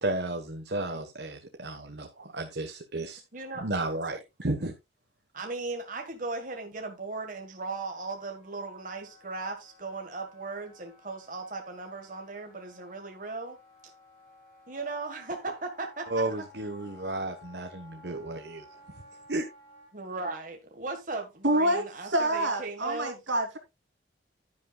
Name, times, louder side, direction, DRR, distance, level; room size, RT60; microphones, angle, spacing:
voice 1, 0.0-3.2 3.6-4.7 16.1-18.6 19.3-19.4, right 2 dB, 60° right, 1.2 m, -33 dB
voice 2, 3.3-3.7 5.3-13.6 13.8-13.9 14.7-16.4 19.9-23.1, right 3 dB, 45° right, 1.6 m, -37 dB
Wind instrument woodwind instrument, 7.8-19.9, left 2 dB, 30° left, 7.1 m, -56 dB
voice 3, 21.4-23.6, right 1 dB, 75° right, 2.9 m, -27 dB
11.0 x 10.5 x 2.3 m
head